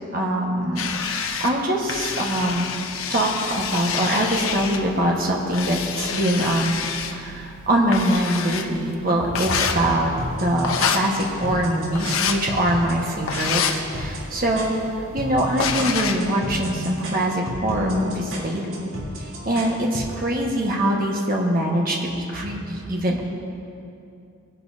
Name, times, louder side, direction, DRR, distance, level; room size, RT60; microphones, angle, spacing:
voice 1, 0.1-2.7 3.1-6.8 7.1-10.1 10.4-14.8 15.1-18.9 19.4-23.2, right 1 dB, 45° right, -2 dB, 1.5 m, -23 dB
sound 1, 0.8-16.3, left 6 dB, 80° left, 0.8 m, -29 dB
sound 2, 10.2-20.2, equal, 75° right, 3.3 m, -33 dB
20.5 x 11.5 x 2.8 m, 2.6 s
head